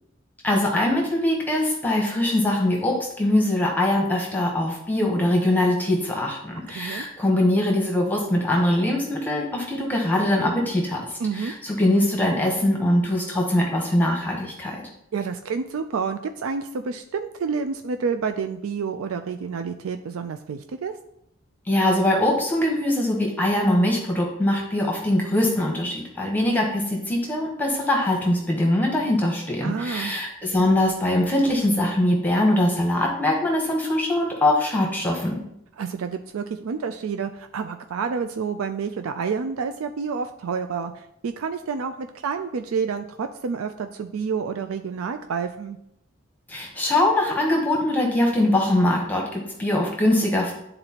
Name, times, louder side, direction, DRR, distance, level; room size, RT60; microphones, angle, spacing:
voice 1, 0.4-11.0 11.3-14.8 21.7-35.4 46.5-50.5, left 1 dB, 10° left, 0 dB, 0.9 m, -22 dB
voice 2, 6.7-7.1 11.2-11.5 15.1-20.9 29.6-30.2 35.8-45.8, right 5 dB, 85° right, 8 dB, 0.4 m, -29 dB
10.5 x 3.9 x 2.9 m, 0.79 s
head